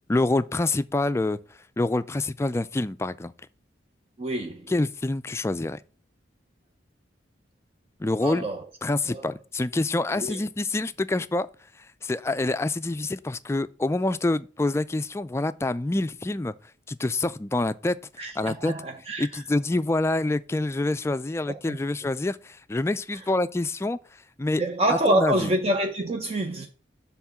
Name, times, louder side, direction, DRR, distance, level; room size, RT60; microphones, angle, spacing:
voice 1, 0.1-1.4 1.8-3.3 4.7-5.8 8.0-8.5 8.8-11.5 12.0-16.5 16.9-18.0 18.4-18.7 19.2-24.0 24.4-24.6 24.9-25.5, left 2 dB, 15° left, 0.3 m, -26 dB
voice 2, 4.2-4.7 8.2-8.6 9.1-9.3 10.2-10.4 18.2-19.4 21.5-21.8 24.6-26.7, right 1 dB, 35° right, 0.6 m, -27 dB
7.0 x 3.6 x 5.7 m
head